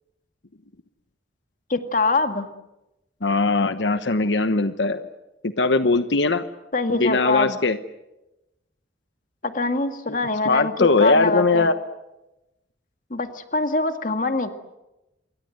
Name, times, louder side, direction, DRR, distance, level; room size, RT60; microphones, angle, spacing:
voice 1, 1.7-2.5 6.7-7.6 9.4-11.7 13.1-14.5, left 3 dB, 50° left, 7 dB, 2.0 m, -24 dB
voice 2, 3.2-5.1 5.4-6.4 6.9-7.8 10.4-11.8, left 3 dB, 85° left, 10 dB, 1.1 m, -20 dB
27.5 x 23.0 x 7.9 m, 0.96 s
head